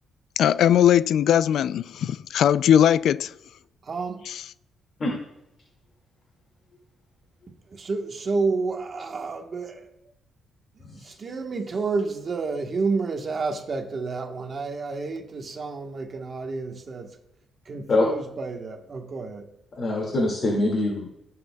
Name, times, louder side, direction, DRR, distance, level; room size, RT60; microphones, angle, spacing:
voice 1, 0.4-3.3 4.3-4.4, left 10 dB, 65° left, 0.3 m, -19 dB
voice 2, 3.8-4.3 7.7-9.9 10.9-17.1 17.6-19.5, right 4 dB, 35° right, 1.3 m, -30 dB
voice 3, 19.7-21.1, left 2 dB, 35° left, 2.1 m, -24 dB
18.0 x 7.8 x 2.3 m
cardioid pair, 150°, 0 cm